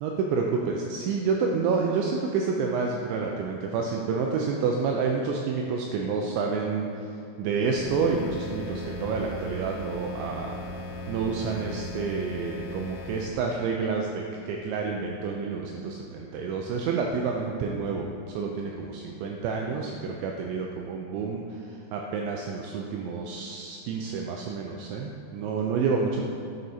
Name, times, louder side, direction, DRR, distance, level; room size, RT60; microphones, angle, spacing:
voice 1, 0.0-10.6 11.1-26.2, right 5 dB, 85° right, 1 dB, 2.6 m, -29 dB
sound 1, 7.6-13.3, left 1 dB, 90° left, 3.3 m, -37 dB
11.0 x 5.0 x 4.2 m, 2.8 s
omnidirectional pair, 5.8 m